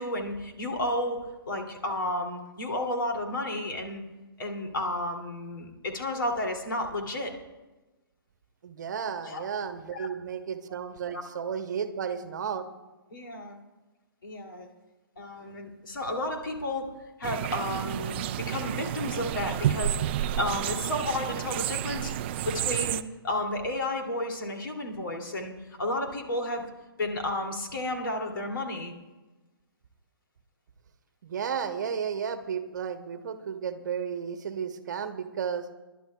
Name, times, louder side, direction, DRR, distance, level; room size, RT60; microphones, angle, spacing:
voice 1, 0.0-4.0 4.4-7.3 9.2-9.4 9.9-10.1 13.1-13.6 14.2-14.7 15.2-16.9 17.2-20.0 20.3-22.1 22.4-26.7 27.0-28.9, left 1 dB, 60° left, 3 dB, 2.7 m, -32 dB
voice 2, 8.6-12.7 31.2-35.7, right 7 dB, 50° right, 10 dB, 1.0 m, -33 dB
sound 1, 17.2-23.0, right 11 dB, 30° right, 0.4 m, -30 dB
29.5 x 12.0 x 2.3 m, 1.1 s
figure-of-eight pair, 125°, 13 cm